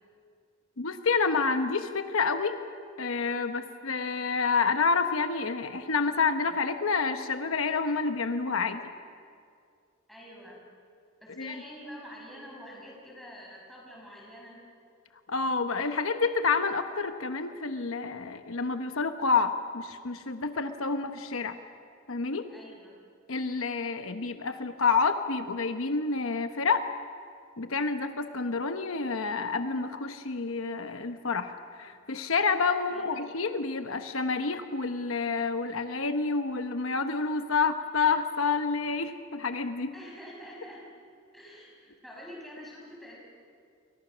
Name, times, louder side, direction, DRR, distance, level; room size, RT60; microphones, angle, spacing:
voice 1, 0.8-2.5 3.0-8.8 11.4-11.6 15.3-21.6 22.1-22.5 23.3-26.8 27.6-39.9, left 4 dB, 75° left, 8 dB, 1.0 m, -28 dB
voice 2, 10.1-10.7 11.2-14.6 22.5-23.0 32.9-33.0 39.9-40.9 41.3-43.2, equal, ahead, -3 dB, 5.6 m, -46 dB
29.5 x 23.0 x 6.2 m, 2.2 s
head